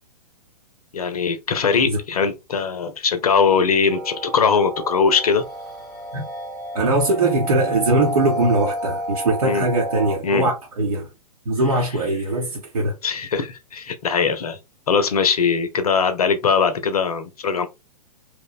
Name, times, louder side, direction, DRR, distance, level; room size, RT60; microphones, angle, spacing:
voice 1, 0.9-5.4 9.4-9.6 10.2-10.4 13.0-14.6 14.9-17.7, left 5 dB, 70° left, 0.6 m, -20 dB
sound 1, 3.9-10.2, equal, ahead, 0.8 m, -30 dB
voice 2, 6.7-11.1 11.5-12.9, right 2 dB, 65° right, 0.8 m, -21 dB
3.0 x 2.0 x 2.4 m
figure-of-eight pair, 115°, 20 cm